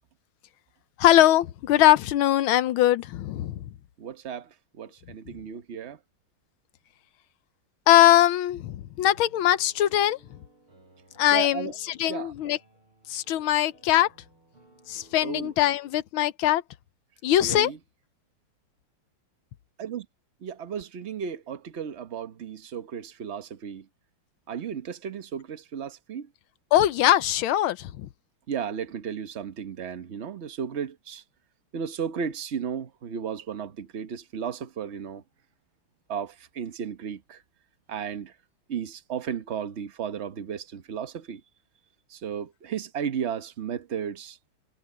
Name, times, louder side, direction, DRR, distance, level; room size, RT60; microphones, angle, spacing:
voice 1, 1.0-3.7 7.9-10.2 11.2-12.6 13.1-14.1 14.9-16.6 17.2-17.7 26.7-28.1, left 13 dB, 75° left, 1.5 m, -21 dB
voice 2, 4.0-4.5 4.8-6.0 11.3-11.7 12.1-12.3 15.2-15.5 17.4-17.8 19.8-20.1 20.4-23.9 24.5-26.3 28.5-31.2 31.7-35.2 36.1-37.4 37.9-38.3 38.7-41.4 42.1-44.4, right 7 dB, 40° right, 1.0 m, -34 dB
Piano, 9.0-15.9, right 2 dB, 80° right, 8.8 m, -58 dB
omnidirectional pair, 2.4 m